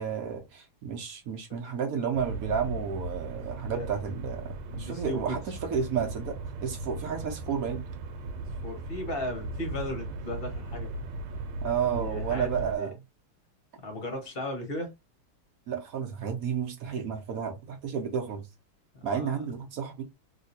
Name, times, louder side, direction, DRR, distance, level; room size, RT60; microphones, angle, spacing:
voice 1, 0.0-7.8 11.6-12.9 15.7-18.5 19.0-20.0, right 7 dB, 65° right, 0.9 m, -32 dB
sound 1, 2.1-12.8, right 2 dB, 80° right, 1.5 m, -37 dB
voice 2, 4.6-5.4 8.6-10.9 11.9-12.9 13.8-14.9 18.9-19.3, left 1 dB, 30° left, 1.2 m, -36 dB
3.3 x 2.9 x 2.8 m
omnidirectional pair, 2.3 m